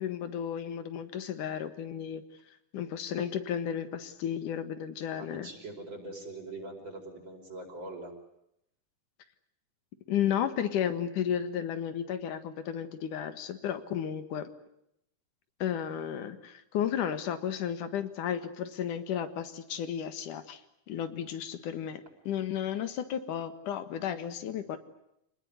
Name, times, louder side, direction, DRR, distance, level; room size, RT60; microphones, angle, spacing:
voice 1, 0.0-2.2 2.7-5.5 10.1-14.5 15.6-20.6 20.9-24.8, left 9 dB, 85° left, 10 dB, 3.2 m, -33 dB
voice 2, 5.1-8.1, right 2 dB, 35° right, 2 dB, 5.6 m, -43 dB
27.0 x 20.0 x 9.7 m, 0.79 s
omnidirectional pair, 3.5 m